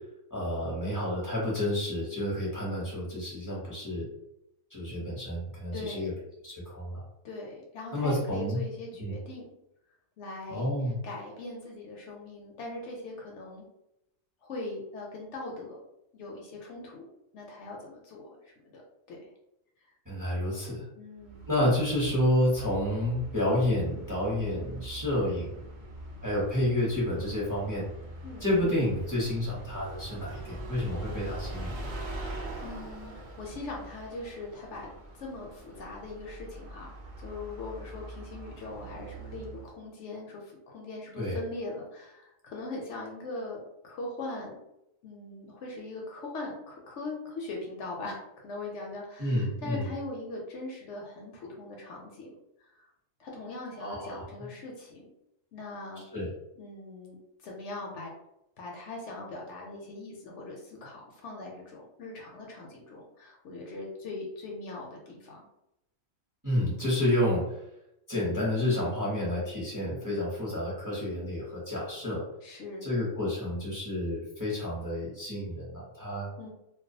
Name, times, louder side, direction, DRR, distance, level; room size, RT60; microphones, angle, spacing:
voice 1, 0.3-4.1 4.7-6.1 6.4-7.0 7.9-8.6 9.0-9.1 10.5-11.0 20.1-20.8 21.5-25.5 26.2-27.8 28.4-31.7 41.2-41.4 49.2-49.9 53.8-54.2 56.1-56.3 66.4-67.4 68.1-72.2 72.8-76.3, left 1 dB, 20° right, -6 dB, 0.7 m, -29 dB
voice 2, 5.7-6.1 7.2-9.5 10.2-10.7 11.0-13.6 14.4-15.8 16.1-17.0 17.3-18.3 18.6-18.8 19.1-19.2 21.0-21.4 28.2-28.5 32.2-32.3 32.6-34.9 35.2-44.6 45.0-52.4 53.2-55.1 55.5-56.0 56.6-57.2 57.4-58.1 58.6-65.5 72.4-72.9 76.4-76.5, left 2 dB, 70° left, -1 dB, 0.8 m, -40 dB
Bus, 21.2-39.8, right 2 dB, 70° right, 0.4 m, -43 dB
2.3 x 2.3 x 2.6 m, 0.83 s
omnidirectional pair, 1.4 m